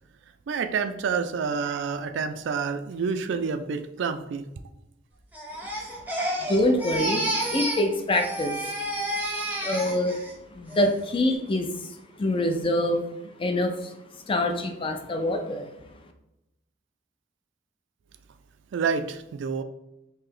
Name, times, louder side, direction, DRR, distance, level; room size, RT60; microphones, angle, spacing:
voice 1, 0.5-4.5 18.7-19.6, right 5 dB, 65° right, 9 dB, 0.3 m, -28 dB
Crying sobbing, 5.3-7.9 8.1-10.3 10.7-11.1, right 1 dB, 10° right, 0.7 m, -30 dB
voice 2, 6.4-8.5 9.6-10.2 10.5-11.9 12.2-13.0 13.4-13.9 14.3-15.7, left 1 dB, 30° left, 5 dB, 0.4 m, -25 dB
3.1 x 2.8 x 3.7 m, 0.90 s
head